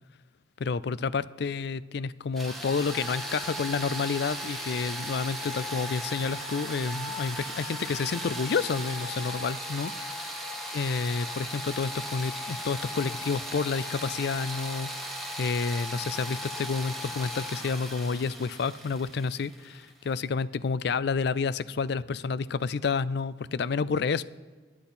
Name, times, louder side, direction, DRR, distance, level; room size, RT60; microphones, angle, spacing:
voice 1, 0.6-9.9 10.7-24.2, left 5 dB, 60° left, 18 dB, 0.4 m, -30 dB
sound 1, 2.3-20.1, equal, ahead, 1.8 m, -37 dB
23.5 x 10.0 x 4.3 m, 1.4 s
head